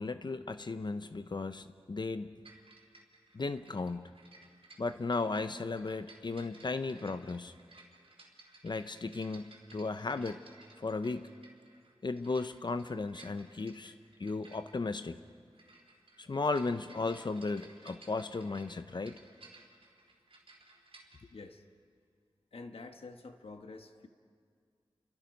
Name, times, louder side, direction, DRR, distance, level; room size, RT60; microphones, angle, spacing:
voice 1, 0.0-2.4 3.3-4.1 4.8-7.5 8.6-10.4 10.8-11.3 12.0-13.9 14.2-15.2 16.2-19.2, left 3 dB, 50° left, 10 dB, 0.7 m, -35 dB
sound 1, 2.4-21.2, right 3 dB, 75° right, 3.8 m, -58 dB
voice 2, 21.3-21.6 22.5-24.1, left 3 dB, 75° left, 6 dB, 1.3 m, -48 dB
30.0 x 24.0 x 5.3 m, 2.1 s
wide cardioid pair, 95°, 10 cm